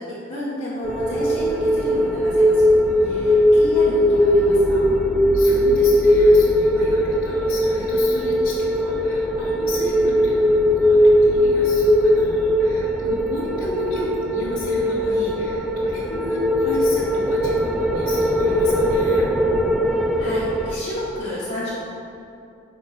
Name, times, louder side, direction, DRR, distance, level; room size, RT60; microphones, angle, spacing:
voice 1, 0.0-2.7 3.0-5.0 13.5-13.7 20.2-21.7, left 1 dB, 30° left, -10 dB, 1.5 m, -31 dB
sound 1, 0.8-20.8, equal, ahead, 0.6 m, -19 dB
voice 2, 2.8-3.6 5.3-19.3, left 1 dB, 50° left, -8 dB, 1.3 m, -33 dB
11.0 x 4.3 x 5.9 m, 2.6 s
head